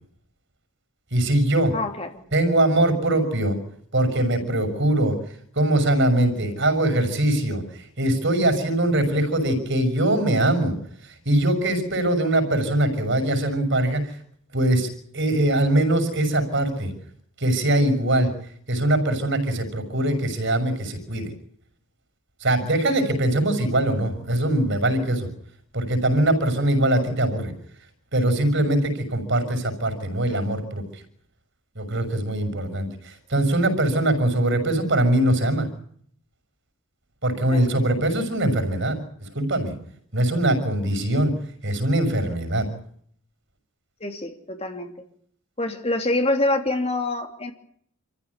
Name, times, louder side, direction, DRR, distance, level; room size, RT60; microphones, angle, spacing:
voice 1, 1.1-1.8 2.3-3.6 3.9-5.2 5.5-7.6 8.0-10.7 11.2-14.1 14.5-16.9 17.4-18.3 18.7-21.3 22.4-25.3 25.7-27.5 28.1-30.8 31.7-35.7 37.2-39.8 40.1-41.3 41.6-42.7, right 1 dB, 55° right, 8 dB, 6.3 m, -22 dB
voice 2, 1.7-2.3 37.5-37.7 44.0-44.9 45.6-47.5, left 2 dB, 25° left, 5 dB, 3.0 m, -26 dB
28.5 x 15.0 x 9.8 m, 0.65 s
head